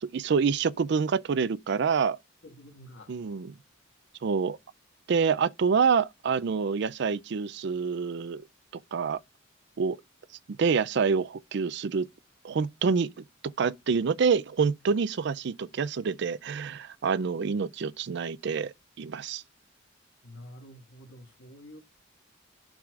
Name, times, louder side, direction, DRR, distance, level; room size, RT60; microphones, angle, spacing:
voice 1, 0.0-2.2 3.1-3.5 4.2-4.6 5.1-8.4 8.9-9.2 9.8-10.0 10.5-12.1 12.4-13.1 13.6-19.4, right 5 dB, 60° right, 0.4 m, -27 dB
voice 2, 2.4-3.1 20.2-21.8, equal, 70° left, 1.9 m, -48 dB
11.5 x 4.8 x 2.4 m
head